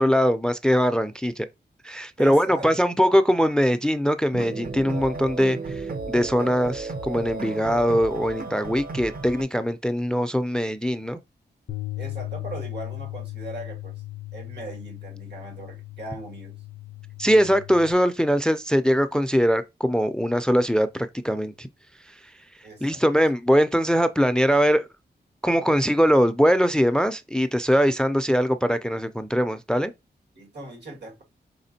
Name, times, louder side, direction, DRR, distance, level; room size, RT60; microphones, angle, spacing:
voice 1, 0.0-1.5 1.8-5.8 6.1-11.2 17.2-21.7 22.8-24.9 25.4-29.9, equal, 5° left, 0.3 m, -21 dB
voice 2, 2.2-2.7 12.0-14.0 14.3-16.6 22.6-23.0 30.3-31.2, right 2 dB, 75° right, 1.9 m, -39 dB
sound 1, 4.3-9.4, right 3 dB, 55° right, 0.7 m, -34 dB
Bass guitar, 11.7-17.9, left 17 dB, 80° left, 0.5 m, -37 dB
5.0 x 3.5 x 2.7 m
wide cardioid pair, 100°, 18 cm